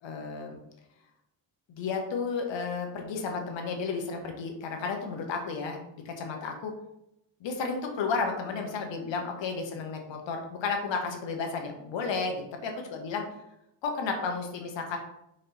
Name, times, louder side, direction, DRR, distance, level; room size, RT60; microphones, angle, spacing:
voice 1, 0.0-0.6 1.7-5.8 6.0-6.7 7.4-13.2 13.8-15.0, left 4 dB, 65° left, 3 dB, 1.5 m, -32 dB
5.0 x 4.4 x 4.2 m, 0.83 s
supercardioid pair, 70°, 48 cm